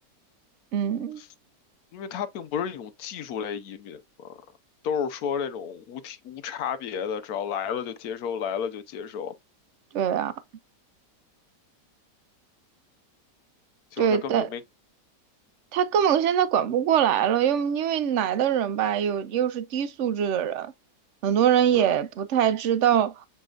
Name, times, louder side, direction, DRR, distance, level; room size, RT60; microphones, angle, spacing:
voice 1, 0.7-1.2 9.9-10.3 14.0-14.5 15.7-20.7 21.2-23.3, right 9 dB, 65° right, 0.8 m, -23 dB
voice 2, 1.9-4.4 4.8-9.3 13.9-14.6 21.7-22.0, left 7 dB, 65° left, 1.1 m, -32 dB
7.0 x 3.1 x 2.4 m
omnidirectional pair, 1.8 m